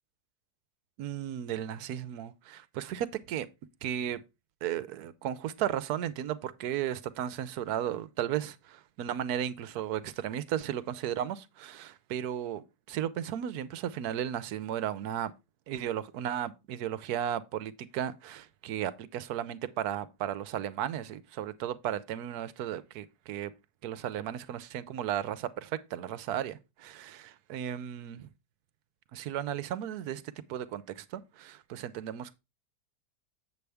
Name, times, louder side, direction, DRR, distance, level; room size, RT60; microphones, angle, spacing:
voice 1, 1.0-3.5 3.8-4.2 4.6-15.3 15.7-23.5 23.8-28.3 29.1-32.4, right 10 dB, 75° right, 1.1 m, -35 dB
8.2 x 7.0 x 3.4 m
omnidirectional pair, 1.7 m